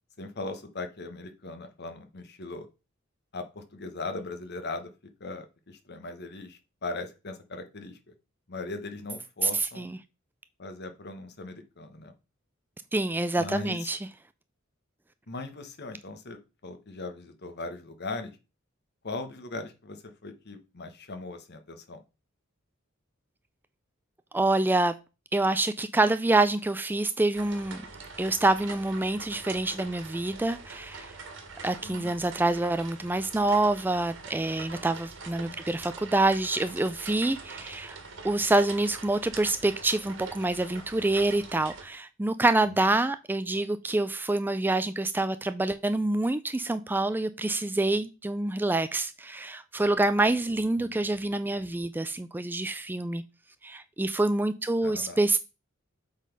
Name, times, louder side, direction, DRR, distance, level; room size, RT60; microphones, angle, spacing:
voice 1, 0.2-2.7 3.3-4.9 5.2-8.0 8.5-9.9 10.6-12.1 13.4-13.8 15.3-18.3 19.0-22.0 31.8-32.1 35.4-35.6 42.6-43.0 50.8-51.0 54.8-55.2, left 3 dB, 55° left, 1.2 m, -39 dB
voice 2, 9.4-10.0 12.9-14.0 24.3-24.9 25.3-27.8 28.2-31.1 31.6-38.0 38.2-53.2 53.6-55.4, right 2 dB, 10° right, 0.3 m, -26 dB
sound 1, 27.3-41.8, right 4 dB, 65° right, 1.8 m, -44 dB
7.4 x 4.0 x 5.2 m
head